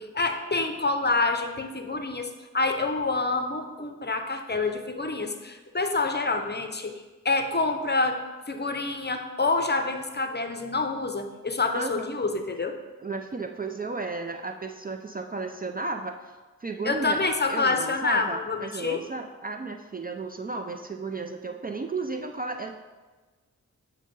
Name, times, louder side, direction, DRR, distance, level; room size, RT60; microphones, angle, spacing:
voice 1, 0.0-6.9 7.2-8.2 8.5-12.8 16.8-19.0, left 3 dB, 30° left, 6 dB, 0.7 m, -27 dB
voice 2, 11.7-12.2 13.0-16.3 16.6-17.2 17.5-22.8, right 3 dB, 30° right, 4 dB, 0.4 m, -34 dB
7.3 x 2.8 x 5.2 m, 1.3 s
cardioid pair, 45°, 33 cm